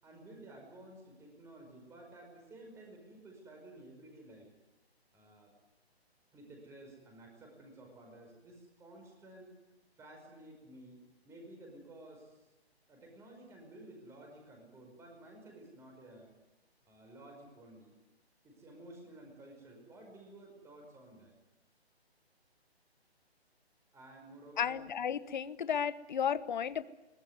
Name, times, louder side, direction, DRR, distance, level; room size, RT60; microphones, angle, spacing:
voice 1, 0.0-4.5 5.1-5.5 6.3-9.6 10.0-11.0 11.2-12.5 12.9-16.3 16.8-17.9 18.4-21.3 23.9-24.8, right 1 dB, 10° right, 2 dB, 5.4 m, -53 dB
voice 2, 24.6-26.8, left 8 dB, 45° left, 16 dB, 1.2 m, -33 dB
23.0 x 19.5 x 9.5 m, 1.0 s
hypercardioid pair, 155°, 32 cm